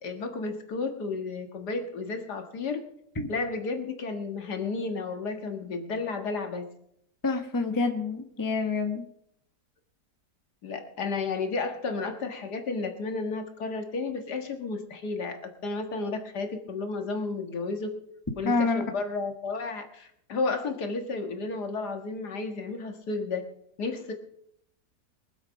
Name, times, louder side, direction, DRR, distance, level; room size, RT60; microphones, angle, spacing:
voice 1, 0.0-2.8 3.3-6.7 10.6-17.9 18.4-23.4 23.8-24.1, left 3 dB, 70° left, 5 dB, 2.1 m, -32 dB
voice 2, 7.2-9.0 18.4-18.8, left 3 dB, 15° left, 5 dB, 1.1 m, -27 dB
23.0 x 7.8 x 5.2 m, 0.72 s
omnidirectional pair, 1.8 m